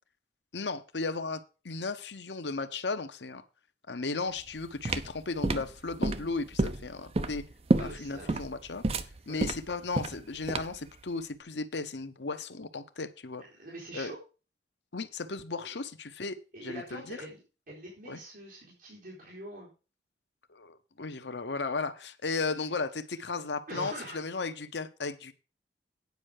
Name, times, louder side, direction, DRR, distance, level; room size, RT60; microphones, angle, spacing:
voice 1, 0.5-3.4 3.9-7.4 7.8-8.8 9.3-13.4 13.9-14.1 14.9-17.2 18.1-18.2 20.5-25.3, left 3 dB, 80° left, 11 dB, 1.0 m, -35 dB
sound 1, 4.4-10.9, right 2 dB, 35° right, 0.6 m, -30 dB
voice 2, 7.7-8.3 9.3-9.4 13.6-14.2 16.5-17.4 17.7-19.7 23.7-24.2, right 1 dB, 55° right, -5 dB, 4.1 m, -43 dB
9.5 x 5.5 x 6.5 m, 0.33 s
head